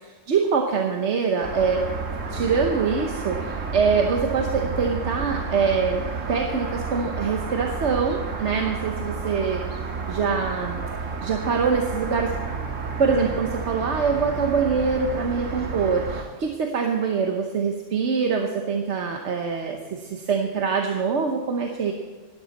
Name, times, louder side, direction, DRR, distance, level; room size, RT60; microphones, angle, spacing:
voice 1, 0.3-1.9 2.3-6.0 6.3-9.6 10.1-10.8 11.2-12.3 13.0-21.9, right 5 dB, 65° right, 3 dB, 1.2 m, -24 dB
sound 1, 1.4-16.2, right 4 dB, 85° right, 1.7 m, -31 dB
16.5 x 13.0 x 4.1 m, 1.3 s
omnidirectional pair, 1.3 m